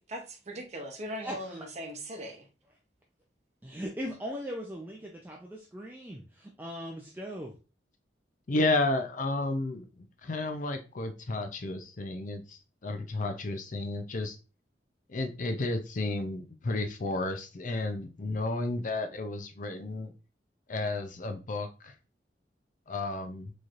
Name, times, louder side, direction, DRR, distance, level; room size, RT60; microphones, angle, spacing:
voice 1, 0.1-2.4, equal, 40° right, 0.8 m, -39 dB
voice 2, 1.2-1.7 3.6-7.6, equal, 10° right, 0.5 m, -39 dB
voice 3, 8.5-14.4 15.1-20.1 20.7-21.9 22.9-23.5, left 2 dB, 45° left, 0.5 m, -32 dB
4.2 x 3.1 x 2.5 m
head